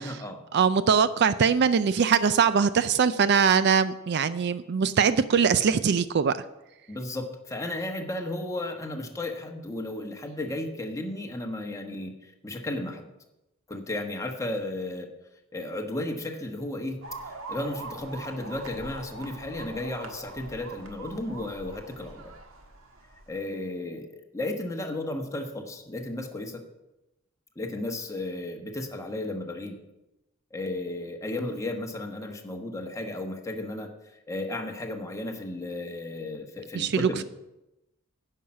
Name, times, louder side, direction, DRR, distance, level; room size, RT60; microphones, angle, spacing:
voice 1, 0.0-0.4 6.9-13.1 13.7-15.1 15.5-17.0 17.5-22.2 23.3-26.6 27.5-29.8 30.5-33.9 34.3-37.2, left 1 dB, 15° left, 3 dB, 1.2 m, -34 dB
voice 2, 0.5-6.3 36.7-37.2, right 6 dB, 55° right, 14 dB, 0.4 m, -22 dB
sound 1, 17.0-23.4, right 3 dB, 75° right, 1.5 m, -43 dB
10.5 x 5.7 x 7.5 m, 0.95 s
head